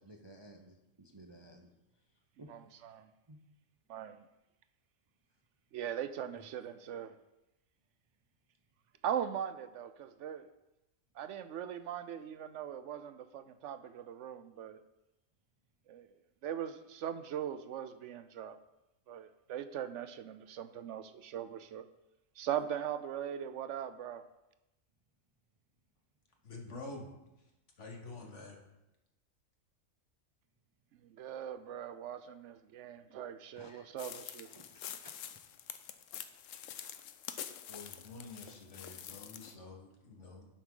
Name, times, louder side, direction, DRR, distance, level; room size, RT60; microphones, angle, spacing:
voice 1, 0.0-2.8 3.3-3.4 6.3-6.4 33.5-34.0 34.4-35.4, right 1 dB, 30° right, 3 dB, 0.5 m, -57 dB
voice 2, 2.5-3.1 3.9-4.3 5.7-7.2 9.0-10.5 11.1-14.8 15.9-16.2 16.4-18.6 19.1-21.9 22.4-24.2 30.9-34.5, right 9 dB, 70° right, 12 dB, 0.9 m, -40 dB
voice 3, 26.4-27.1 27.8-28.6 37.7-40.5, left 3 dB, 65° left, 1 dB, 1.8 m, -48 dB
sound 1, 34.0-39.5, left 9 dB, 85° left, 1.0 m, -46 dB
11.0 x 7.1 x 3.8 m, 0.93 s
omnidirectional pair, 1.3 m